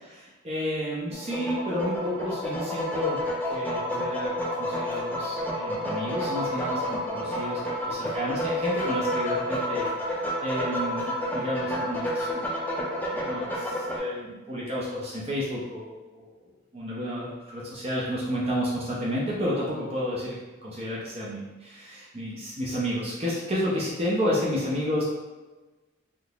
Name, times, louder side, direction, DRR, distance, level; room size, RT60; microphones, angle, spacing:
voice 1, 0.0-12.5 13.1-16.3 16.7-20.4 20.6-25.0, equal, 30° right, -6 dB, 0.6 m, -31 dB
sound 1, 1.1-14.0, equal, 10° left, 0.5 m, -30 dB
3.6 x 2.8 x 2.4 m, 1.2 s
head